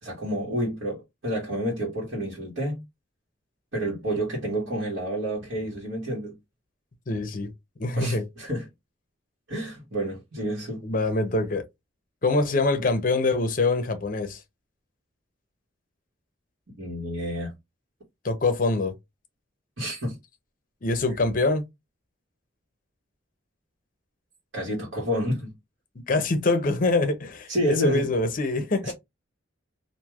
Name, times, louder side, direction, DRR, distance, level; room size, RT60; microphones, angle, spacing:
voice 1, 0.0-2.8 3.7-6.3 8.0-8.7 9.5-10.8 16.8-17.5 19.8-20.2 24.5-25.5 27.5-28.1 28.8-28.9, equal, 75° right, 1.3 m, -29 dB
voice 2, 7.1-7.5 7.8-8.2 10.8-11.6 12.2-14.4 18.2-18.9 20.8-21.6 26.1-27.5 27.8-28.9, left 3 dB, 45° left, 0.6 m, -24 dB
3.1 x 2.5 x 2.3 m
head